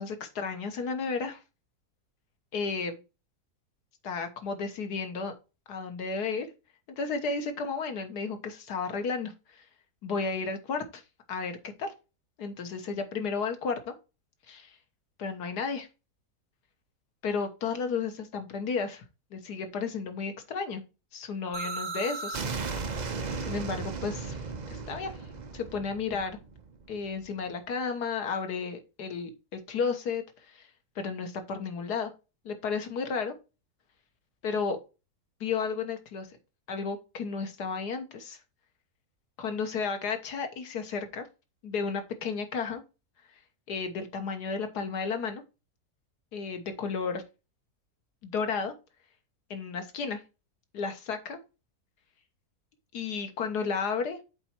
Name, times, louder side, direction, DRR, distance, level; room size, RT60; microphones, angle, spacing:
voice 1, 0.0-1.4 2.5-3.0 4.0-5.3 5.7-6.5 7.0-9.6 10.0-11.0 11.3-11.9 12.4-13.9 14.5-14.7 15.2-15.9 17.2-19.0 19.3-20.8 21.1-22.5 23.4-24.4 24.7-25.2 25.5-26.4 26.9-30.2 30.5-30.7 30.9-32.1 32.4-33.3 34.4-34.8 35.4-36.3 36.7-38.4 39.4-41.3 41.6-42.8 43.7-45.4 46.3-47.2 48.2-48.7 49.5-50.2 50.7-51.4 52.9-54.2, left 5 dB, 90° left, 7 dB, 1.8 m, -33 dB
sound 1, 21.5-27.3, right 4 dB, 40° right, 0.7 m, -36 dB
7.8 x 4.1 x 4.5 m, 0.29 s
omnidirectional pair, 1.7 m